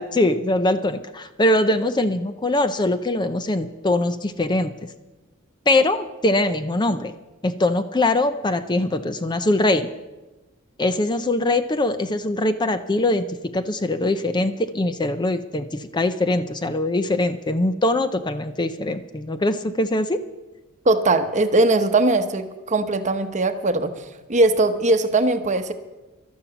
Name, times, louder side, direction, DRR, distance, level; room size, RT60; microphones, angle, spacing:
voice 1, 0.0-4.9 5.7-7.1 7.4-9.9 10.8-20.2, left 2 dB, 20° left, 11 dB, 0.5 m, -22 dB
voice 2, 20.8-25.7, right 2 dB, 35° right, 8 dB, 1.0 m, -20 dB
12.0 x 11.5 x 7.1 m, 1.1 s
head